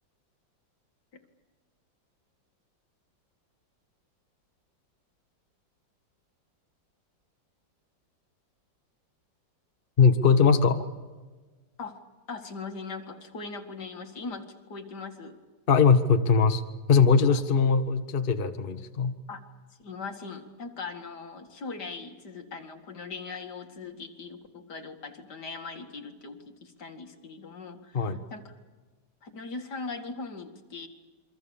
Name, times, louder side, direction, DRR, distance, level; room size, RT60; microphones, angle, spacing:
voice 1, 10.0-10.8 15.7-16.6 16.9-19.1 27.9-28.2, left 5 dB, 35° left, 7 dB, 1.1 m, -21 dB
voice 2, 12.3-15.4 17.3-17.4 19.3-19.4 19.8-28.5 29.2-30.9, left 4 dB, 60° left, 3 dB, 2.6 m, -40 dB
28.0 x 23.5 x 7.1 m, 1.3 s
omnidirectional pair, 2.1 m